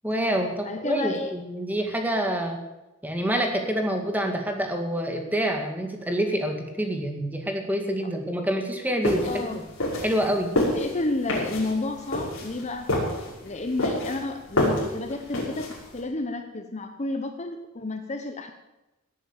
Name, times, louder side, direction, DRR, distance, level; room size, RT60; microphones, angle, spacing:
voice 1, 0.0-2.6 3.0-9.5 10.0-10.5, right 1 dB, 10° right, 3 dB, 2.1 m, -27 dB
voice 2, 0.6-1.3 9.2-9.6 10.7-12.9 13.4-18.5, left 2 dB, 30° left, 6 dB, 1.0 m, -31 dB
sound 1, 9.0-16.0, left 1 dB, 65° left, 5.9 m, -28 dB
18.0 x 9.1 x 7.4 m, 1.0 s
head